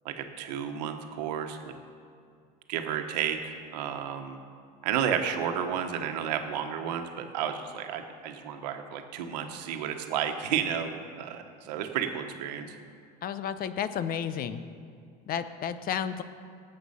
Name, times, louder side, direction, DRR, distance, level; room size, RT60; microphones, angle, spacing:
voice 1, 0.0-1.7 2.7-4.4 4.8-12.7, right 8 dB, 85° right, 6 dB, 1.3 m, -32 dB
voice 2, 13.2-14.6 15.3-16.2, left 8 dB, 45° left, 12 dB, 0.8 m, -32 dB
18.5 x 7.7 x 5.7 m, 2.3 s
supercardioid pair, 105°, 21 cm